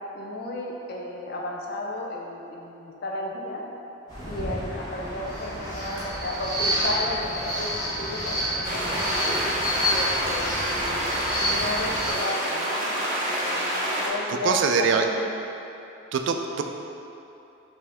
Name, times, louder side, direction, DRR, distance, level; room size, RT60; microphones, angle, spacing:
voice 1, 0.1-3.6 4.2-9.3 9.8-11.1 11.4-15.3, left 1 dB, 50° left, -1 dB, 0.5 m, -33 dB
sound 1, 4.1-12.1, equal, 20° left, 1.1 m, -29 dB
sound 2, 8.6-14.1, right 1 dB, 40° right, 0.7 m, -27 dB
voice 2, 14.3-15.0 16.1-16.6, right 5 dB, 60° right, 4 dB, 0.3 m, -23 dB
5.4 x 2.7 x 3.4 m, 2.9 s
head